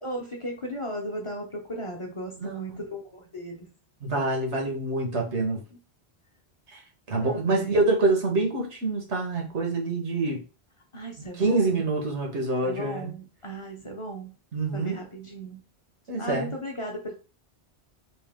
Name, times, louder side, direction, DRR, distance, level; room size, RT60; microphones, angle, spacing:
voice 1, 0.0-3.6 5.2-5.8 7.2-7.8 10.9-11.8 12.6-14.4 14.7-15.6 16.2-17.1, right 1 dB, 30° left, 0.7 m, -36 dB
voice 2, 4.0-5.6 6.7-6.8 7.1-10.4 11.4-13.1 14.5-15.0 16.1-16.5, right 2 dB, 90° right, 1.5 m, -26 dB
3.5 x 2.8 x 3.6 m
omnidirectional pair, 1.1 m